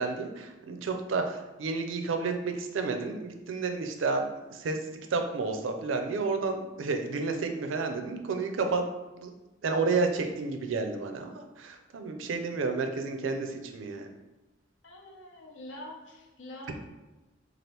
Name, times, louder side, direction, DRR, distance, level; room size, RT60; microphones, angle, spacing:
voice 1, 0.0-4.8 5.1-8.8 9.2-9.3 9.6-14.1, right 4 dB, 80° right, 5 dB, 0.4 m, -31 dB
voice 2, 14.8-16.9, left 1 dB, 75° left, -1 dB, 0.7 m, -45 dB
2.9 x 2.4 x 3.2 m, 1.1 s
head